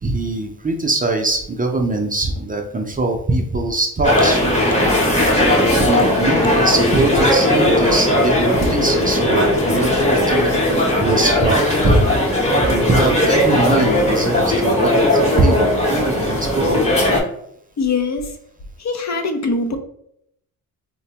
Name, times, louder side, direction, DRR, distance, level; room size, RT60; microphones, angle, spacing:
voice 1, 0.0-4.4 5.7-12.1 12.6-16.8, right 2 dB, 25° right, 2 dB, 0.5 m, -21 dB
sound 1, 4.0-17.2, left 1 dB, 20° left, 1.0 m, -17 dB
voice 2, 17.8-18.3 18.8-19.8, left 4 dB, 45° left, 6 dB, 0.6 m, -22 dB
3.7 x 2.1 x 2.8 m, 0.71 s
cardioid pair, 75°, 37 cm